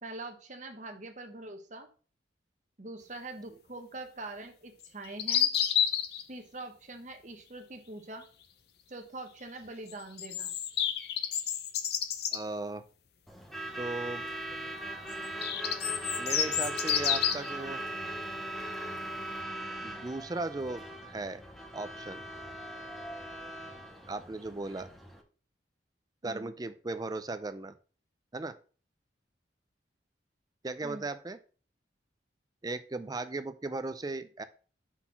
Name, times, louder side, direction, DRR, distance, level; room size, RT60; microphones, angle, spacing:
voice 1, 0.0-1.9 2.8-5.5 6.3-8.3 8.9-10.5 26.2-26.5 30.8-31.1, right 2 dB, 40° right, 5 dB, 1.1 m, -43 dB
sound 1, 4.8-6.2 9.9-12.4 15.1-17.5, left 9 dB, 60° left, 0.7 m, -30 dB
voice 2, 12.3-12.8 13.8-14.2 16.2-17.8 19.8-21.4 21.7-22.2 24.1-24.9 26.2-27.7 28.3-28.6 30.6-31.4 32.6-34.4, right 2 dB, 20° right, 11 dB, 0.4 m, -37 dB
Truck / Alarm, 13.3-25.2, right 1 dB, ahead, 0.9 m, -40 dB
5.8 x 4.1 x 5.8 m, 0.39 s
head